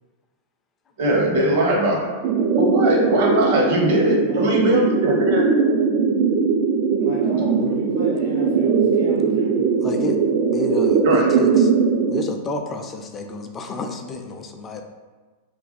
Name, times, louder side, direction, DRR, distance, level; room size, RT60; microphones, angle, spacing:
voice 1, 1.0-2.1 2.6-5.5 11.0-11.3, right 1 dB, 65° right, -1 dB, 0.9 m, -20 dB
sound 1, 2.2-12.2, right 5 dB, 45° right, 0.3 m, -20 dB
voice 2, 4.1-4.6 7.0-9.7, right 2 dB, 85° right, -9 dB, 1.2 m, -36 dB
voice 3, 9.8-10.2 10.5-11.7 12.1-14.8, left 2 dB, 25° left, 5 dB, 0.4 m, -30 dB
2.6 x 2.2 x 3.9 m, 1.4 s
hypercardioid pair, 105°, 0 cm